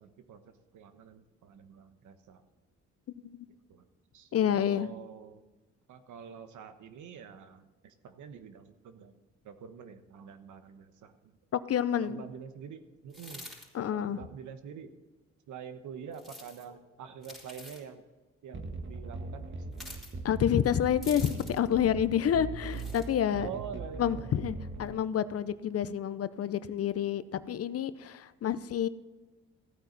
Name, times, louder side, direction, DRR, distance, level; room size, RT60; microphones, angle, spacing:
voice 1, 0.0-2.5 3.5-3.8 4.1-5.4 5.9-11.4 11.9-13.5 13.9-14.9 15.5-18.0 18.4-19.5 23.4-24.4 24.8-24.9, right 7 dB, 75° right, 9 dB, 1.3 m, -46 dB
voice 2, 4.3-4.9 11.5-12.2 13.7-14.2 20.2-23.5 24.0-28.9, left 9 dB, 50° left, 15 dB, 0.7 m, -29 dB
sound 1, 13.1-13.7 16.1-16.7 17.2-17.8 19.7-20.1 21.0-21.7 22.7-23.1, left 1 dB, ahead, 4.1 m, -47 dB
sound 2, 18.5-24.9, right 3 dB, 40° right, 1.6 m, -40 dB
15.0 x 9.1 x 4.1 m, 1.2 s
cardioid pair, 90°, 30 cm